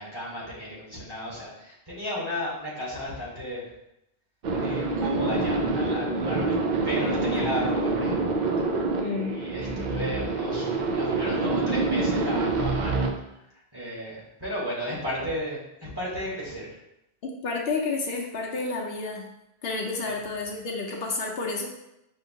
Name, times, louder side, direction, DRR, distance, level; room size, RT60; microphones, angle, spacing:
voice 1, 0.0-3.6 4.6-6.6 6.8-8.4 9.3-13.1 13.7-16.7 20.1-20.2, equal, 25° right, -7 dB, 1.3 m, -34 dB
sound 1, 4.4-13.1, right 3 dB, 55° right, 0.5 m, -26 dB
voice 2, 9.0-9.4 17.2-19.3 19.6-21.7, left 3 dB, 70° left, 0 dB, 0.9 m, -30 dB
5.7 x 2.7 x 2.7 m, 0.85 s
omnidirectional pair, 1.1 m